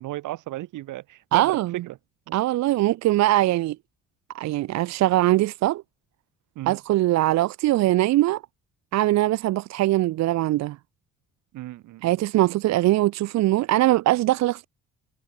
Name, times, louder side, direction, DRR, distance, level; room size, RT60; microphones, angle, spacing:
voice 1, 0.0-2.0 2.3-2.4 6.6-6.8 11.5-12.2, right 16 dB, 85° right, 1.6 m, -35 dB
voice 2, 1.3-1.8 2.3-3.8 4.3-5.8 6.7-8.4 8.9-10.8 12.0-14.7, right 16 dB, 65° right, 0.4 m, -21 dB
cardioid pair, 90°, 30 cm